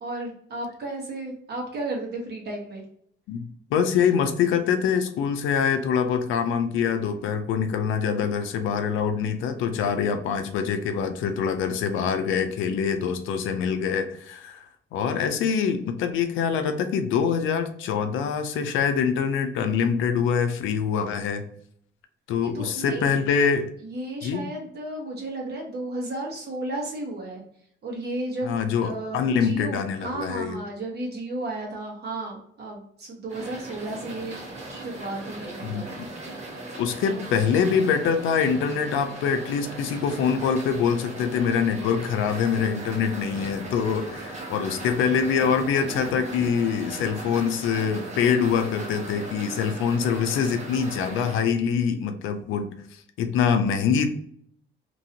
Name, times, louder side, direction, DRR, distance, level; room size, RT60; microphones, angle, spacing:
voice 1, 0.0-2.8 22.4-23.2 23.8-27.4 27.8-34.4 34.7-35.9 37.1-37.2, right 2 dB, 55° right, -1 dB, 1.3 m, -33 dB
voice 2, 3.3-14.7 14.9-21.4 22.3-23.7 24.2-24.5 28.4-30.6 35.6-36.1 36.8-54.1, left 7 dB, 90° left, 7 dB, 0.5 m, -24 dB
sound 1, 33.3-51.4, right 2 dB, 35° right, 1.1 m, -38 dB
2.9 x 2.7 x 2.8 m, 0.66 s
cardioid pair, 90°, 20 cm